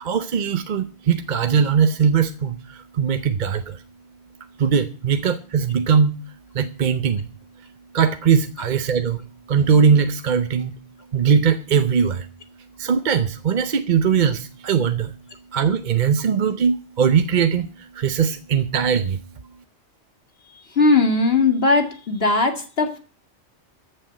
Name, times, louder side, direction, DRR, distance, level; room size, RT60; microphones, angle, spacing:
voice 1, 0.0-2.6 2.9-3.8 4.6-6.2 6.5-7.3 7.9-9.2 9.5-10.7 11.1-12.3 12.8-15.1 15.5-17.7 18.0-19.2, right 7 dB, 45° right, 0.7 m, -20 dB
voice 2, 20.5-23.0, left 3 dB, 55° left, 2.2 m, -19 dB
14.0 x 6.7 x 7.4 m
omnidirectional pair, 1.2 m